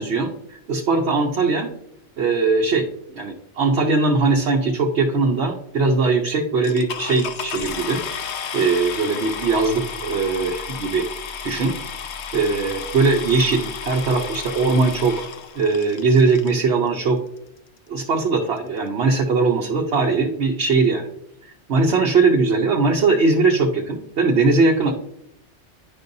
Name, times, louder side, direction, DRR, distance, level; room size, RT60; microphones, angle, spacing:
voice 1, 0.0-1.7 2.2-2.8 3.1-8.0 8.5-11.1 11.4-11.8 12.3-15.2 15.5-17.2 17.9-21.0 21.4-24.9, right 3 dB, 65° right, -1 dB, 1.1 m, -20 dB
sound 1, 6.6-16.6 17.4-17.5 18.0-18.1 18.3-18.6, left 6 dB, 75° left, 1.0 m, -33 dB
10.5 x 5.3 x 2.7 m, 0.74 s
omnidirectional pair, 1.2 m